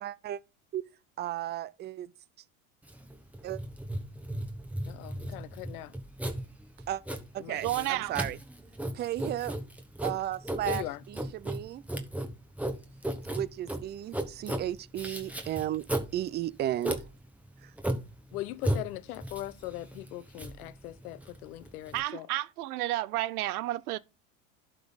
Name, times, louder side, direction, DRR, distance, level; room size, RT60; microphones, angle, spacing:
voice 1, 0.0-0.4 0.7-0.8 1.2-2.1 3.4-3.6 6.9-7.0 7.3-8.4 8.9-9.5 10.0-11.8 13.4-15.8 16.1-17.0 17.6-17.7, right 12 dB, 25° right, 0.4 m, -34 dB
Writing, 2.8-22.0, right 1 dB, 5° right, 1.4 m, -36 dB
voice 2, 4.9-5.9 7.4-7.9 10.7-11.0 18.3-22.3, left 15 dB, 80° left, 0.8 m, -40 dB
voice 3, 7.6-8.1 21.9-24.0, right 16 dB, 85° right, 0.7 m, -31 dB
11.5 x 3.8 x 4.0 m
supercardioid pair, 105°, 43 cm